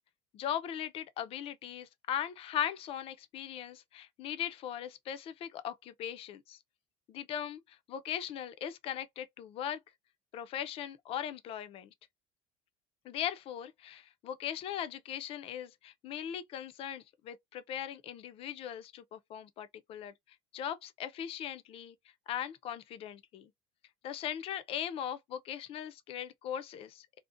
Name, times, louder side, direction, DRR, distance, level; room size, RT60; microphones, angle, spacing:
voice 1, 0.3-6.6 7.1-9.8 10.3-11.9 13.1-20.1 20.5-22.0 22.3-23.5 24.0-27.2, left 10 dB, 40° left, 0.3 m, -39 dB
2.5 x 2.0 x 2.4 m
cardioid pair, 150°, 15 cm